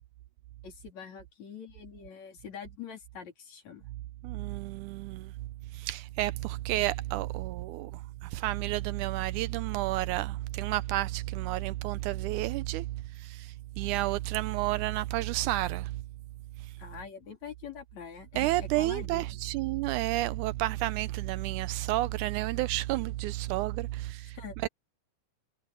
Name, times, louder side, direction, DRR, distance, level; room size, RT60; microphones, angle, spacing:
voice 1, 0.6-3.9 16.8-19.4 24.3-24.6, left 7 dB, 60° left, 4.4 m, -44 dB
voice 2, 4.2-5.3 5.7-16.0 18.4-24.4 24.6-24.7, right 17 dB, 80° right, 1.9 m, -31 dB
omnidirectional pair, 3.7 m